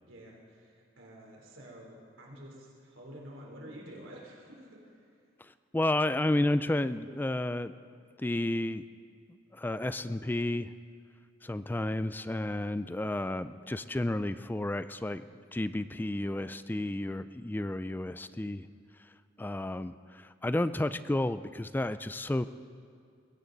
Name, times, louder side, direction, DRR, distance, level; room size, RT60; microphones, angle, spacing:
voice 1, 0.0-5.1, equal, 80° right, -2 dB, 3.6 m, -49 dB
voice 2, 5.4-7.7 8.2-8.8 9.5-10.7 11.4-15.2 15.5-18.7 19.4-22.5, left 1 dB, 10° left, 13 dB, 0.3 m, -31 dB
21.0 x 17.0 x 4.0 m, 2.3 s
head